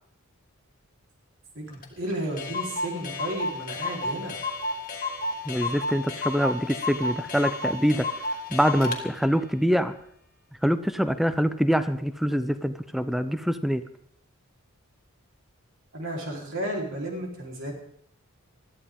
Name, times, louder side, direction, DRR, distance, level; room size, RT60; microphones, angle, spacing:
voice 1, 1.5-4.4 15.9-17.8, right 1 dB, 60° right, -1 dB, 4.2 m, -33 dB
Clock, 1.8-1.9 2.1-2.2 2.4-9.0, left 2 dB, 40° left, 2.2 m, -31 dB
voice 2, 5.4-8.1 8.5-9.9 10.6-13.8, equal, ahead, 11 dB, 0.7 m, -24 dB
21.0 x 14.0 x 3.8 m, 0.68 s
head